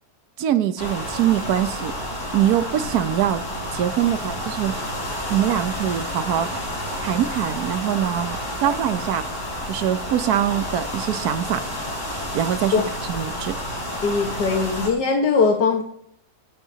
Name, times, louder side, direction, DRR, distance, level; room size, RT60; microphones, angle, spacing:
voice 1, 0.4-1.9 2.3-3.4 3.7-4.8 5.3-6.6 7.0-9.2 9.7-11.6 12.3-12.8 13.1-13.6, right 11 dB, 70° right, 1.2 m, -23 dB
sound 1, 0.8-14.9, left 1 dB, 65° left, 5.1 m, -30 dB
voice 2, 14.0-15.8, left 4 dB, 85° left, 2.0 m, -20 dB
21.0 x 8.7 x 2.8 m
omnidirectional pair, 1.8 m